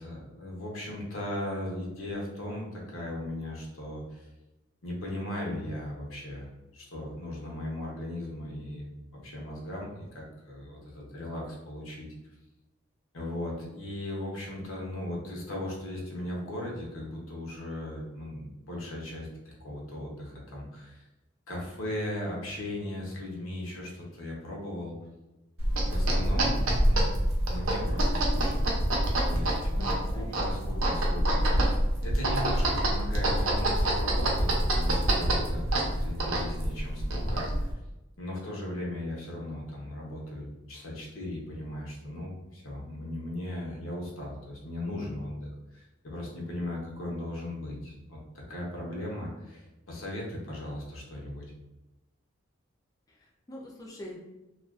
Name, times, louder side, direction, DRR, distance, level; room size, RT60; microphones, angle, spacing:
voice 1, 0.0-4.3 4.8-8.9 9.1-12.1 13.1-21.0 21.5-25.0 25.9-27.1 27.5-28.7 29.2-29.8 30.1-37.5 38.2-51.4, left 1 dB, 85° left, -2 dB, 0.8 m, -37 dB
sound 1, 25.6-37.7, right 1 dB, 80° right, 0.6 m, -26 dB
voice 2, 29.8-30.6 53.1-54.2, left 1 dB, 15° left, -3 dB, 0.3 m, -44 dB
2.4 x 2.2 x 2.3 m, 0.98 s
head